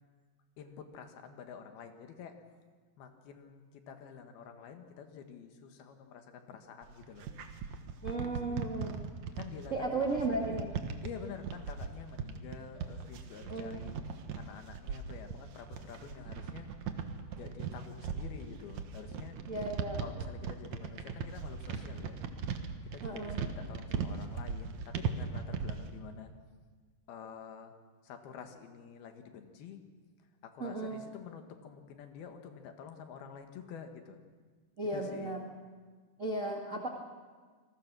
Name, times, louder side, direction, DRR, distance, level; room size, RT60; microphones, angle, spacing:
voice 1, 0.6-2.4 3.0-7.3 8.3-8.6 9.4-10.6 11.0-16.7 17.4-19.4 20.0-22.2 22.9-26.3 27.1-27.7 28.0-29.8 30.4-34.2 34.9-35.3, left 7 dB, 70° left, 6 dB, 3.4 m, -48 dB
sound 1, 6.8-25.9, right 6 dB, 60° right, 2.0 m, -39 dB
voice 2, 8.0-9.0 9.7-10.7 13.4-13.8 19.5-20.0 23.0-23.4 30.6-31.0 34.8-35.4 36.2-36.9, right 2 dB, 90° right, 0 dB, 0.6 m, -35 dB
28.0 x 20.5 x 6.2 m, 1.5 s
omnidirectional pair, 4.8 m